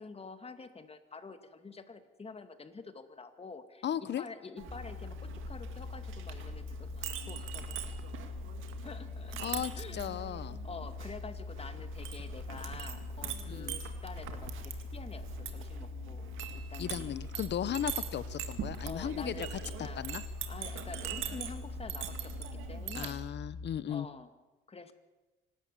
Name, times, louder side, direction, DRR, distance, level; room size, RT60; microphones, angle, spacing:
voice 1, 0.0-7.8 8.8-10.0 10.6-16.3 16.5-17.1 18.8-20.1 20.5-23.2 23.9-24.3 24.7-24.9, left 4 dB, 30° left, 9 dB, 2.1 m, -48 dB
voice 2, 3.8-4.2 9.4-10.6 13.5-13.8 16.8-20.2 23.0-24.1, left 10 dB, 60° left, 16 dB, 0.9 m, -36 dB
Chink clink, 4.6-23.1, right 10 dB, 85° right, 2.2 m, -43 dB
sound 1, 4.7-23.8, left 4 dB, 5° left, 2.3 m, -43 dB
26.0 x 13.0 x 8.5 m, 1.1 s
cardioid pair, 90°, 20 cm